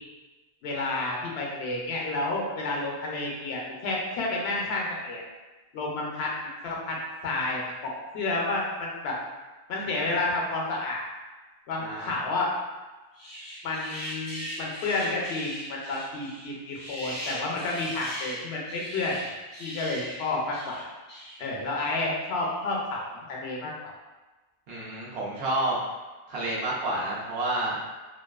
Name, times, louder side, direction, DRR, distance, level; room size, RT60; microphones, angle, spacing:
voice 1, 0.6-5.2 5.7-6.3 6.6-7.0 7.2-9.2 9.7-11.0 11.7-12.5 13.6-19.3 19.6-20.9 21.4-23.9, left 2 dB, 80° left, -2 dB, 0.8 m, -30 dB
voice 2, 11.8-12.1 24.7-25.8 26.3-27.8, right 2 dB, 75° right, -6 dB, 0.9 m, -29 dB
sound 1, 13.1-21.6 22.3-22.9, equal, 25° left, 0.5 m, -40 dB
2.6 x 2.3 x 2.3 m, 1.2 s
omnidirectional pair, 1.0 m